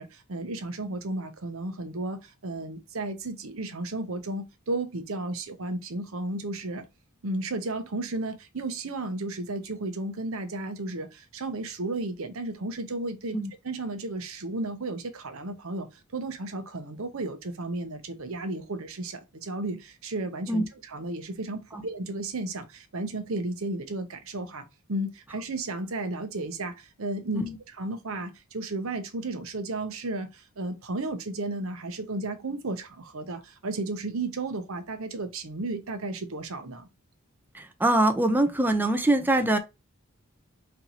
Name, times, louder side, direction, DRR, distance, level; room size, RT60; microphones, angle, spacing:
voice 1, 0.0-6.8 7.2-13.4 13.6-15.9 16.1-36.9, right 2 dB, 65° right, 0.8 m, -33 dB
voice 2, 37.5-39.6, right 1 dB, 10° right, 0.7 m, -23 dB
4.3 x 2.9 x 4.0 m
head